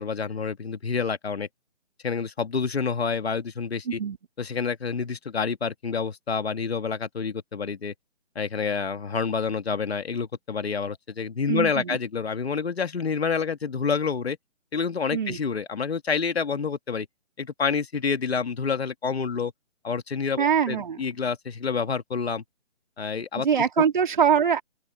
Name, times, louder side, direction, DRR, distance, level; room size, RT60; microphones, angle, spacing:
voice 1, 0.0-1.5 2.0-4.0 4.4-7.9 8.4-14.4 14.7-17.1 17.4-19.5 19.8-22.4 23.0-23.5, left 5 dB, 55° left, 2.2 m, -28 dB
voice 2, 3.9-4.2 11.5-12.0 15.1-15.4 20.4-21.0 23.4-24.6, right 7 dB, 40° right, 2.5 m, -23 dB
open air
hypercardioid pair, 170°, 37 cm